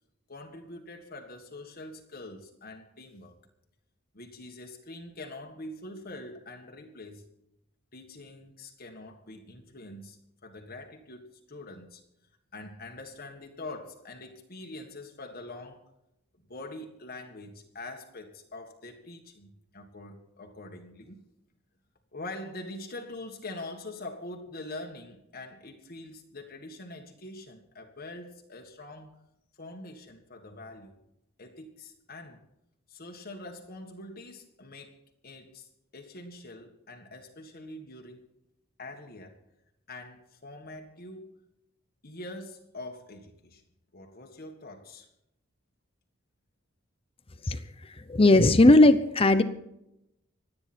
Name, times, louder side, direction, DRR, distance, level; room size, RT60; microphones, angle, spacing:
voice 1, 0.3-3.3 4.1-7.3 7.9-12.0 12.5-15.8 16.5-21.2 22.1-29.2 29.6-30.9 31.4-32.4 32.9-35.0 35.2-38.3 38.8-39.4 39.9-41.3 42.0-43.6 43.9-45.1, left 2 dB, 45° left, 2 dB, 1.8 m, -44 dB
voice 2, 47.5-49.4, left 2 dB, 30° left, 11 dB, 0.8 m, -19 dB
26.0 x 9.6 x 4.4 m, 0.84 s
head